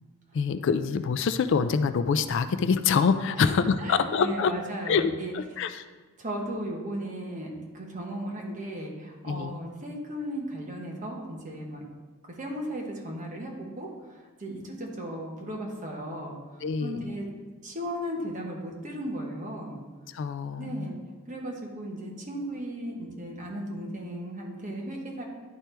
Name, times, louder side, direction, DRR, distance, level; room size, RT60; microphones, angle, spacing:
voice 1, 0.3-4.5 4.9-5.8 9.3-9.6 16.6-17.1 20.1-20.9, left 5 dB, 55° left, 11 dB, 0.3 m, -25 dB
voice 2, 3.8-5.3 6.2-11.8 12.2-17.3 17.6-19.8 20.6-21.0 21.3-25.2, right 1 dB, 35° right, 0 dB, 1.2 m, -36 dB
10.0 x 4.5 x 3.4 m, 1.4 s
head